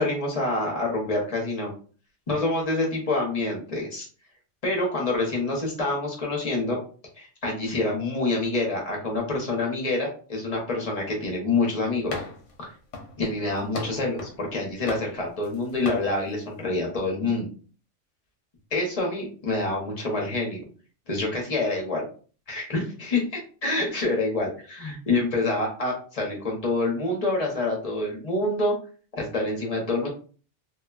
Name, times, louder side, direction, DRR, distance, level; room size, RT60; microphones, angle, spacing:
voice 1, 0.0-1.7 2.3-4.1 4.6-6.8 7.2-12.1 13.2-17.5 18.7-20.6 21.1-22.0 22.5-28.7 29.2-30.1, left 2 dB, 35° left, -1 dB, 0.6 m, -27 dB
sound 1, 12.1-12.5 12.9-14.4 14.9-15.6 15.9-16.1, left 4 dB, 70° left, 0.8 m, -36 dB
2.9 x 2.1 x 2.3 m, 0.40 s
omnidirectional pair, 1.4 m